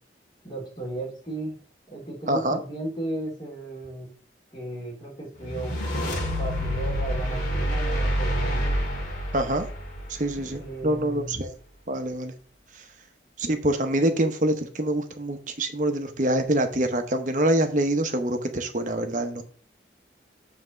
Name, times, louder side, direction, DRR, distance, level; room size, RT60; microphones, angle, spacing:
voice 1, 0.4-1.5 1.9-4.1 4.5-5.8 6.4-8.8 10.3-11.4, right 2 dB, 25° left, -3 dB, 3.2 m, -35 dB
voice 2, 2.3-2.6 9.3-9.6 10.1-11.5 11.9-12.3 13.4-19.4, right 1 dB, 45° right, 7 dB, 0.9 m, -25 dB
sound 1, 5.4-10.7, equal, 45° left, 2.0 m, -28 dB
7.7 x 3.5 x 6.4 m, 0.43 s
head